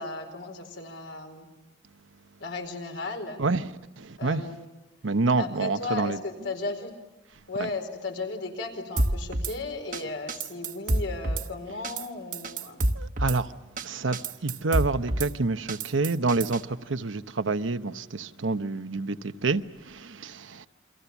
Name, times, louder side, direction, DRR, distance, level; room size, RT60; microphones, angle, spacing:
voice 1, 0.0-1.5 2.4-3.4 4.2-4.6 5.4-6.9 7.5-12.8, left 3 dB, 75° left, 4.4 m, -35 dB
voice 2, 3.4-4.4 5.0-6.2 7.6-7.7 12.9-13.5 13.8-20.7, right 3 dB, 80° right, 1.0 m, -28 dB
Drum kit / Snare drum, 9.0-9.5 9.9-10.0 10.3-11.5 11.8-12.1 12.3-13.4 13.8-13.9 14.1-15.3 15.7-16.6, right 1 dB, 40° right, 1.1 m, -28 dB
29.0 x 24.0 x 7.2 m
head